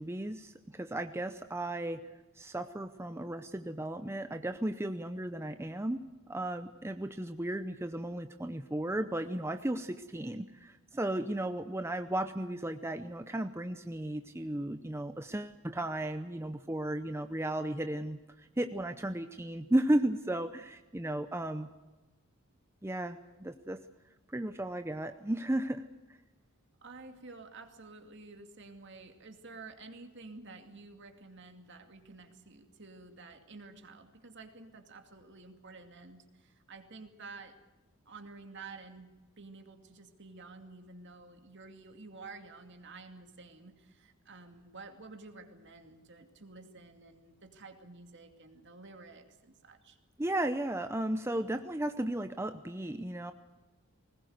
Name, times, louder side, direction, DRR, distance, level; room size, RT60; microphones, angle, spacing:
voice 1, 0.0-2.0 2.3-21.7 22.8-23.8 24.3-25.9 50.2-53.3, right 1 dB, 10° right, 8 dB, 0.6 m, -34 dB
voice 2, 26.8-37.6 38.1-50.0, right 3 dB, 55° right, 5 dB, 2.5 m, -51 dB
21.0 x 19.5 x 8.0 m, 1.2 s
head